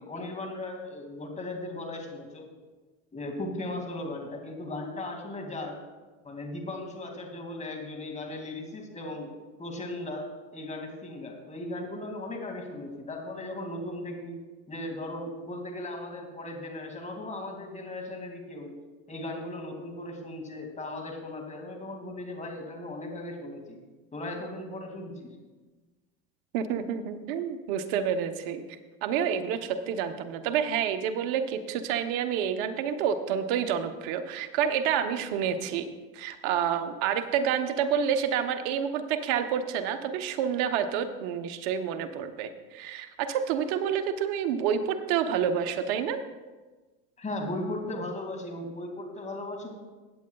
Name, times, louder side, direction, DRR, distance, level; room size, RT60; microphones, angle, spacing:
voice 1, 0.0-2.5 3.1-5.8 6.2-9.3 9.6-14.4 14.7-18.8 19.1-23.8 24.1-25.3 47.2-49.8, left 1 dB, 20° left, 2 dB, 2.3 m, -37 dB
voice 2, 26.5-28.6 29.0-35.9 36.1-46.2, right 8 dB, 70° right, 8 dB, 1.0 m, -28 dB
16.5 x 8.6 x 2.3 m, 1.3 s
supercardioid pair, 95°, 33 cm